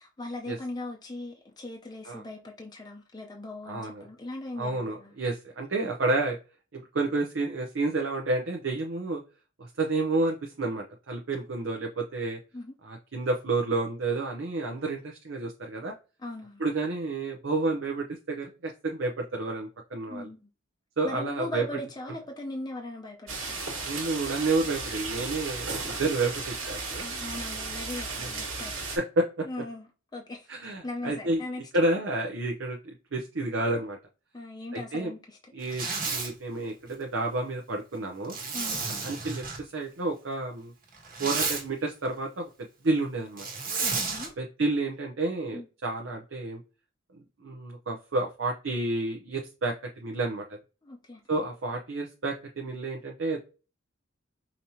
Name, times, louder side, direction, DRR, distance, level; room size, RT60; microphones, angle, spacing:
voice 1, 0.0-5.1 12.5-12.7 16.2-16.6 20.1-20.5 21.0-23.7 27.0-28.7 29.4-31.6 34.3-35.4 38.5-38.8 43.8-44.3 45.5-45.7 50.8-51.2, left 2 dB, 20° left, 0.6 m, -39 dB
voice 2, 3.7-4.0 4.6-6.4 6.7-9.2 9.6-12.4 12.8-15.9 16.6-20.3 21.0-21.6 23.8-27.1 28.2-28.3 29.0-29.4 30.5-31.4 31.7-32.8 33.1-34.0 34.7-35.1 35.5-38.4 38.9-40.7 41.2-42.4 42.8-43.5 44.4-46.6 47.4-49.7 50.0-50.4 51.3-53.4, right 2 dB, 65° right, 0.7 m, -30 dB
sound 1, 23.3-29.0, right 3 dB, 85° right, 1.6 m, -35 dB
Zipper (clothing), 35.6-36.3 38.3-39.6 40.9-41.6 43.4-44.3, right 4 dB, 45° right, 1.3 m, -31 dB
5.1 x 2.9 x 2.8 m
head